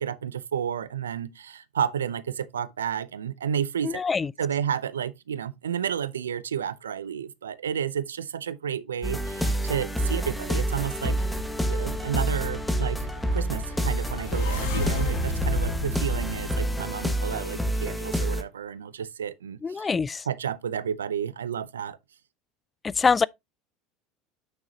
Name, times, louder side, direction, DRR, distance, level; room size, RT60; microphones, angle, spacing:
voice 1, 0.0-4.0 4.4-11.1 11.7-19.9 20.3-22.0, right 8 dB, 85° right, 0.6 m, -31 dB
voice 2, 3.8-4.3 19.6-20.2 22.8-23.2, left 5 dB, 25° left, 0.4 m, -24 dB
sound 1, 9.0-18.4, right 1 dB, 5° left, 1.4 m, -28 dB
sound 2, 13.4-17.6, left 2 dB, 70° left, 2.2 m, -32 dB
9.0 x 6.3 x 2.8 m
hypercardioid pair, 80°, 0 cm